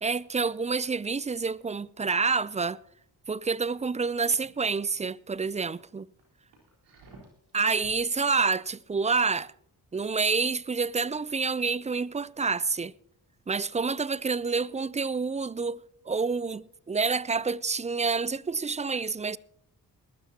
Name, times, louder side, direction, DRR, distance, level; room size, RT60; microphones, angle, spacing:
voice 1, 0.0-2.8 3.3-6.0 7.5-9.5 9.9-12.9 13.5-19.4, right 4 dB, 20° right, 0.4 m, -28 dB
sound 1, 3.7-4.5 4.9-5.2 5.7-5.8 6.2-8.0 8.4-8.6, right 2 dB, 85° right, 4.1 m, -55 dB
20.5 x 12.5 x 2.8 m
supercardioid pair, 50°, 42 cm